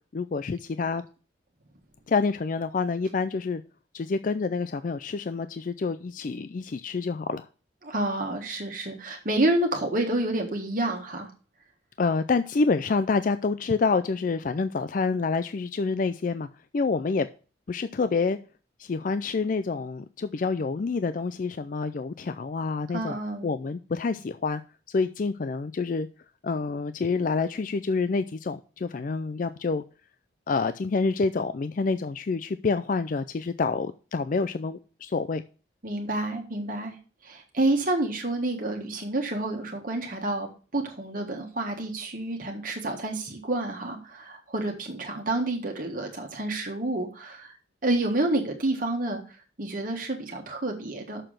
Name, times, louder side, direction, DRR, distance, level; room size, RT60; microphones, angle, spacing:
voice 1, 0.1-1.0 2.1-3.6 3.9-7.5 12.0-16.5 16.7-17.3 17.7-18.4 18.8-23.2 23.4-24.6 24.9-26.1 26.4-29.8 30.5-35.4, left 4 dB, 45° left, 0.4 m, -27 dB
voice 2, 7.8-11.3 22.9-23.5 35.8-36.9 37.2-47.5 47.8-51.2, right 2 dB, 45° right, 1.5 m, -29 dB
6.7 x 6.0 x 6.5 m
head